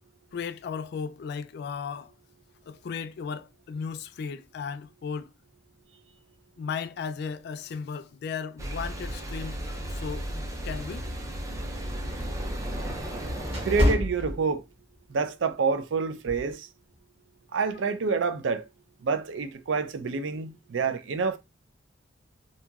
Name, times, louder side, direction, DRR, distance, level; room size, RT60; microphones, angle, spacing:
voice 1, 0.3-2.1 2.7-5.3 6.6-11.0 12.9-13.1, left 6 dB, 60° left, 0.3 m, -36 dB
sound 1, 8.6-13.9, equal, 15° right, 0.4 m, -34 dB
sound 2, 11.3-15.0 15.4-15.7 16.3-16.5, left 1 dB, 35° right, 1.3 m, -28 dB
voice 2, 13.6-14.6 15.1-16.7 17.5-18.7 19.0-21.4, right 5 dB, 85° right, 0.4 m, -27 dB
2.8 x 2.6 x 2.3 m
head